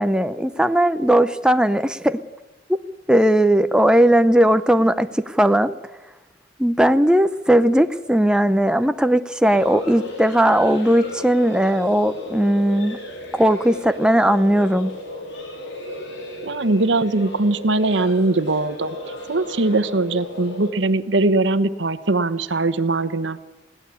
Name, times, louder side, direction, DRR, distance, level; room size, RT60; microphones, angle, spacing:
voice 1, 0.0-2.2 3.1-5.7 6.6-13.0 13.3-14.9, right 1 dB, 5° right, 10 dB, 0.6 m, -18 dB
sound 1, 9.4-20.7, left 1 dB, 80° left, 4.7 m, -34 dB
voice 2, 16.4-23.4, right 2 dB, 85° right, 12 dB, 1.1 m, -21 dB
21.0 x 17.0 x 8.4 m, 1.1 s
head